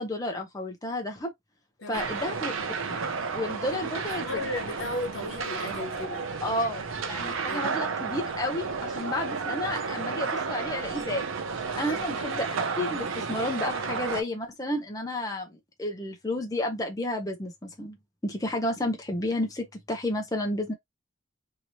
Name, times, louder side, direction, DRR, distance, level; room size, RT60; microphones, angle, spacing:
voice 1, 0.0-1.3 1.9-2.5 2.9-3.0 3.3-4.2 6.4-11.3 11.8-12.5 12.8-18.0 18.2-20.7, left 1 dB, 20° left, 0.6 m, -31 dB
sound 1, 1.9-14.2, right 5 dB, 85° right, 0.6 m, -32 dB
voice 2, 4.2-6.3 7.5-7.7 11.8-12.2, left 2 dB, 80° left, 1.0 m, -35 dB
2.9 x 2.8 x 2.8 m
head